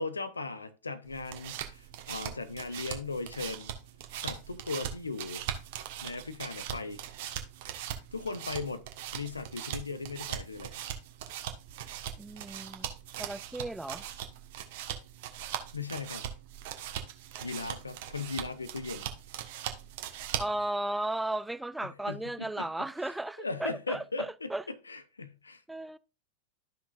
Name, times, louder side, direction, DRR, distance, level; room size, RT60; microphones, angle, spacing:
voice 1, 0.0-3.7 4.1-5.4 6.0-7.0 8.1-8.8 9.1-10.8 15.7-16.2 17.4-19.0 21.8-22.7 23.4-25.6, left 3 dB, 80° left, 0.8 m, -38 dB
sound 1, 1.1-20.6, right 10 dB, 50° right, 1.2 m, -40 dB
voice 2, 12.2-12.9 13.2-14.0 20.4-24.6 25.7-26.0, right 1 dB, 5° right, 0.4 m, -35 dB
13.0 x 5.9 x 2.4 m
figure-of-eight pair, 90°, 0 cm